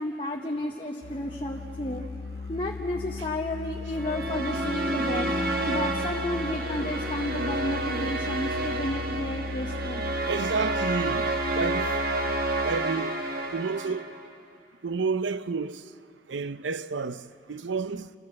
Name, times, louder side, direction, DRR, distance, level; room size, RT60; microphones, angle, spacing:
voice 1, 0.0-2.0 2.5-5.3 5.7-10.1, left 1 dB, 30° left, 0.9 m, -32 dB
Musical instrument, 1.0-13.0, left 4 dB, 55° left, 0.6 m, -37 dB
sound 1, 3.9-14.3, right 2 dB, 50° right, 1.4 m, -30 dB
voice 2, 10.3-11.9 12.6-13.1 13.5-14.0 14.8-15.8 16.3-18.1, right 4 dB, 80° right, 0.6 m, -30 dB
28.0 x 13.5 x 7.7 m
head